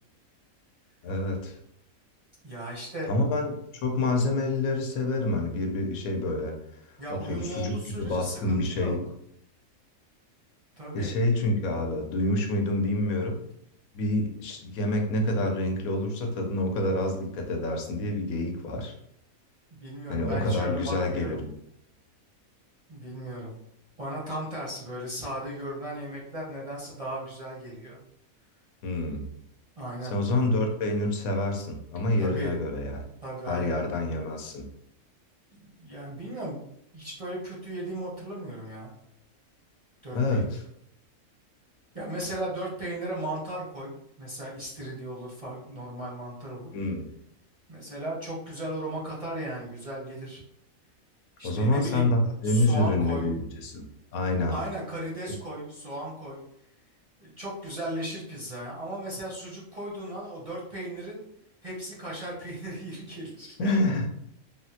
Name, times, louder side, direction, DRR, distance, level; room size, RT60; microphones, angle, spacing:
voice 1, 1.0-1.6 3.1-3.5 3.8-6.6 7.1-9.0 10.9-13.4 13.9-18.9 20.1-21.5 28.8-29.3 30.0-33.0 33.5-34.6 40.1-40.6 46.7-47.1 51.4-53.9 54.1-54.5 63.6-64.1, left 1 dB, 80° left, 3 dB, 1.0 m, -27 dB
voice 2, 2.4-3.1 7.0-9.0 10.8-11.1 19.8-21.4 22.9-23.6 24.0-28.0 29.8-30.1 32.2-32.6 33.2-33.8 35.5-36.6 36.9-38.9 40.0-40.5 41.9-43.9 44.2-46.7 47.7-50.4 51.4-52.1 52.4-53.3 54.5-56.4 57.2-61.2 61.6-63.8, right 1 dB, 40° right, -6 dB, 0.5 m, -36 dB
3.5 x 2.1 x 2.7 m, 0.73 s
omnidirectional pair, 1.5 m